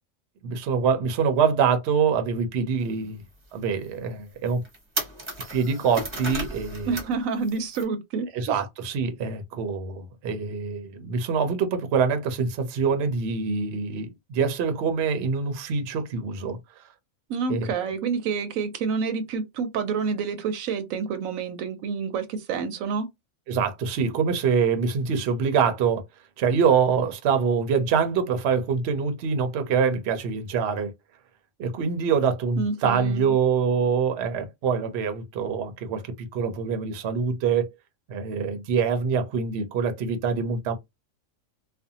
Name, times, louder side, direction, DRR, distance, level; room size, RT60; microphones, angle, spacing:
voice 1, 0.4-3.2 3.5-4.6 5.5-6.9 8.3-16.6 17.5-17.8 23.5-26.0 26.4-30.9 31.6-37.7 38.1-40.8, right 6 dB, 60° right, 0.8 m, -25 dB
sound 1, 2.8-2.9 3.4-3.5 4.1-4.2 4.5-7.2 7.4-7.8, right 1 dB, 30° right, 0.6 m, -34 dB
voice 2, 6.9-8.6 17.3-23.1 32.6-33.3, right 5 dB, 85° right, 1.0 m, -28 dB
2.5 x 2.3 x 2.7 m
omnidirectional pair, 1.4 m